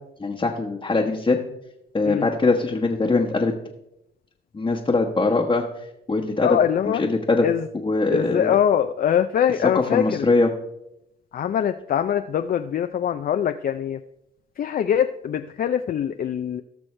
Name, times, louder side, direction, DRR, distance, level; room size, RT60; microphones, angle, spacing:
voice 1, 0.2-1.4 1.9-3.5 4.5-5.6 6.1-6.6 6.9-7.5 7.7-8.6 9.7-10.5, left 3 dB, 25° left, -1 dB, 1.1 m, -21 dB
voice 2, 6.4-7.0 7.4-7.7 8.1-10.3 11.3-14.0 14.6-16.6, left 9 dB, 45° left, 8 dB, 0.5 m, -23 dB
18.5 x 6.2 x 3.3 m, 0.84 s
cardioid pair, 90°, 20 cm